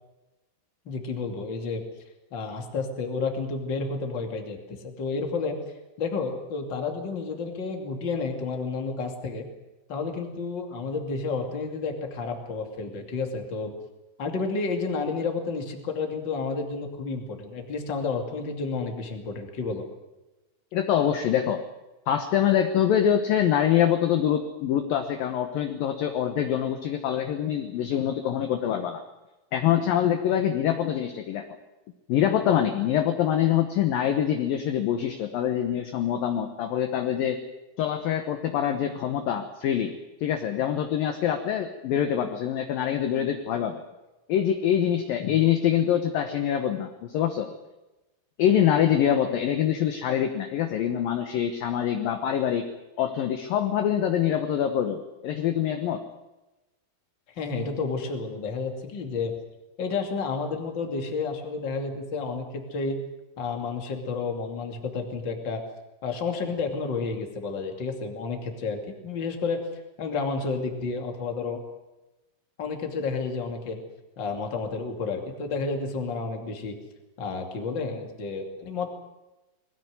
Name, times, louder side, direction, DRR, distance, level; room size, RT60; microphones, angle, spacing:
voice 1, 0.8-1.8 2.3-5.6 6.0-9.4 9.9-13.7 14.2-19.8 45.2-45.4 57.3-59.4 59.8-63.0 63.4-65.6 66.0-69.7 70.0-71.6 72.6-73.8 74.2-76.8 77.2-78.9, left 4 dB, 30° left, 4 dB, 2.3 m, -31 dB
voice 2, 20.7-21.6 22.1-29.0 29.5-31.5 32.1-37.4 37.8-39.9 40.2-43.8 44.3-47.5 48.4-52.7 53.0-56.0, left 10 dB, 75° left, 6 dB, 2.1 m, -25 dB
21.0 x 16.5 x 9.5 m, 1.0 s
omnidirectional pair, 5.7 m